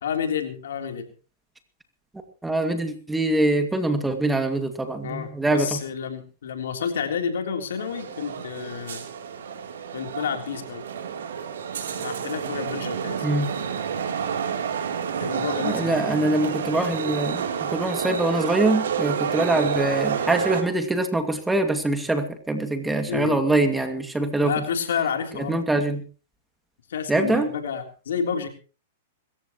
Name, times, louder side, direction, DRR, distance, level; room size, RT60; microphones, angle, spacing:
voice 1, 0.0-1.1 5.0-9.0 9.9-10.8 12.0-13.3 15.2-16.0 23.1-23.4 24.4-25.6 26.9-28.5, left 7 dB, 80° left, 4 dB, 3.5 m, -30 dB
voice 2, 2.4-5.8 13.2-13.5 15.6-24.5 25.4-26.0 27.1-27.5, right 2 dB, 5° right, 6 dB, 2.3 m, -24 dB
sound 1, 7.8-20.6, right 7 dB, 80° right, 3.4 m, -29 dB
25.0 x 14.5 x 3.1 m, 0.38 s
hypercardioid pair, 125°, 0 cm